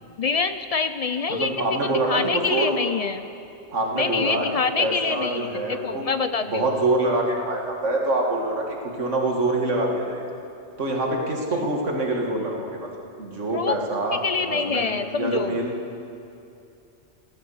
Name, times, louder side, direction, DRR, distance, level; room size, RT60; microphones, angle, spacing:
voice 1, 0.2-1.5 1.9-3.2 3.9-6.7 11.5-11.7 13.5-13.8 14.1-15.6, left 5 dB, 70° left, 10 dB, 0.3 m, -26 dB
voice 2, 1.3-2.7 3.7-4.5 4.8-6.0 6.5-10.2 10.8-15.7, right 2 dB, 85° right, 1 dB, 2.2 m, -25 dB
15.5 x 12.5 x 7.1 m, 2.6 s
omnidirectional pair, 1.2 m